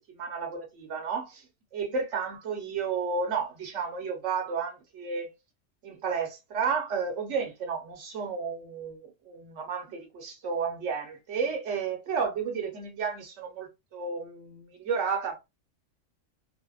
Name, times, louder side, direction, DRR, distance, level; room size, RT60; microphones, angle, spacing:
voice 1, 0.1-1.4 1.7-5.3 5.8-15.3, right 5 dB, 65° right, 1.1 m, -32 dB
2.7 x 2.1 x 2.3 m
omnidirectional pair, 1.4 m